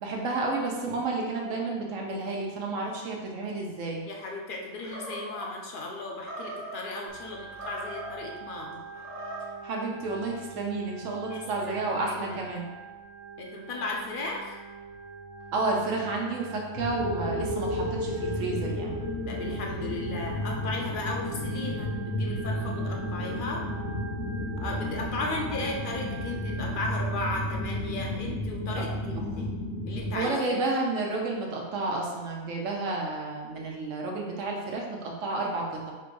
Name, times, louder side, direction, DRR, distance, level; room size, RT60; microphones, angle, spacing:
voice 1, 0.0-4.0 9.6-12.7 15.5-18.9 29.2-29.5 30.1-35.9, right 3 dB, 85° right, -1 dB, 1.1 m, -31 dB
voice 2, 4.1-8.8 11.3-12.4 13.4-14.6 19.3-23.6 24.6-29.5 29.8-30.6, left 2 dB, 55° left, 0 dB, 0.7 m, -36 dB
Animal, 4.8-5.5 6.2-6.8 7.4-8.2 8.9-9.6, right 2 dB, 15° right, 0.6 m, -39 dB
Organ, 7.1-26.8, right 5 dB, 70° right, 0.8 m, -44 dB
sound 1, 16.7-30.2, left 1 dB, 80° left, 1.1 m, -32 dB
3.6 x 2.6 x 4.6 m, 1.3 s
omnidirectional pair, 1.3 m